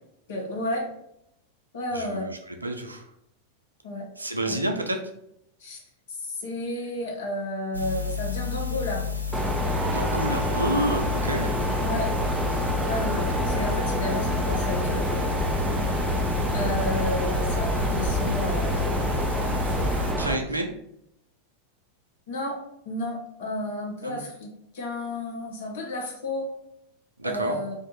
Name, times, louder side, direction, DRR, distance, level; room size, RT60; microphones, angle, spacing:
voice 1, 0.3-0.9 1.7-2.3 3.8-4.1 4.5-4.8 5.6-5.8 6.1-9.1 11.8-12.1 12.5-15.1 16.5-19.1 19.9-20.1 22.3-22.6 22.9-24.5 24.7-26.5 27.2-27.7, left 1 dB, 55° left, 1 dB, 0.8 m, -32 dB
voice 2, 1.9-3.1 4.2-5.0 9.9-11.5 20.1-20.7 24.0-24.2 27.2-27.6, right 1 dB, 80° right, 4 dB, 0.4 m, -29 dB
sound 1, 7.7-20.1, left 6 dB, 90° left, 0.4 m, -30 dB
Mechanisms, 9.3-20.4, right 1 dB, 10° right, 0.3 m, -27 dB
2.5 x 2.4 x 4.0 m, 0.77 s
figure-of-eight pair, 90°, 0 cm